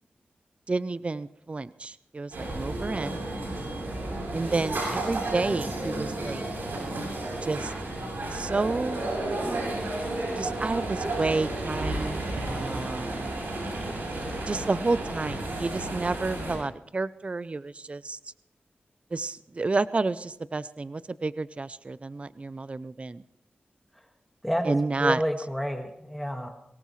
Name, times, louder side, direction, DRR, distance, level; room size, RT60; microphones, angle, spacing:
voice 1, 0.7-3.2 4.3-6.4 7.4-7.7 8.3-9.1 10.4-12.3 12.5-13.3 14.5-18.2 19.1-23.2 24.6-25.2, right 3 dB, 35° right, 15 dB, 0.5 m, -30 dB
sound 1, 2.3-16.6, right 2 dB, 85° right, 7.4 m, -32 dB
voice 2, 24.4-26.5, equal, ahead, 3 dB, 1.7 m, -29 dB
23.5 x 18.5 x 3.2 m, 0.75 s
wide cardioid pair, 75°, 4 cm